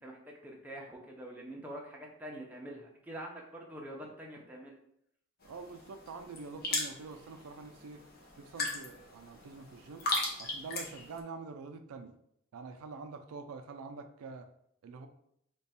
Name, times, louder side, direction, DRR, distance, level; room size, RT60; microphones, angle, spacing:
voice 1, 0.0-4.8, right 1 dB, 5° right, -2 dB, 0.5 m, -45 dB
sound 1, 5.4-11.2, left 2 dB, 45° left, 0.7 m, -38 dB
voice 2, 5.4-8.0 8.4-10.1 10.4-12.1 12.5-14.5 14.8-15.1, right 4 dB, 85° right, 8 dB, 0.4 m, -46 dB
3.3 x 2.3 x 4.1 m, 0.73 s
head